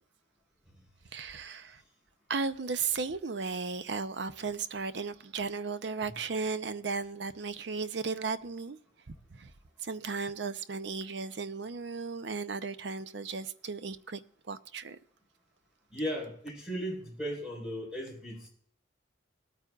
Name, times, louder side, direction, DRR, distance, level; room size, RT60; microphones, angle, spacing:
voice 1, 1.1-1.8 2.3-8.8 9.3-9.5 9.8-14.2 14.5-15.0, right 4 dB, 60° right, 0.6 m, -35 dB
voice 2, 15.9-18.5, equal, 5° right, 4.3 m, -36 dB
20.0 x 9.1 x 2.4 m
head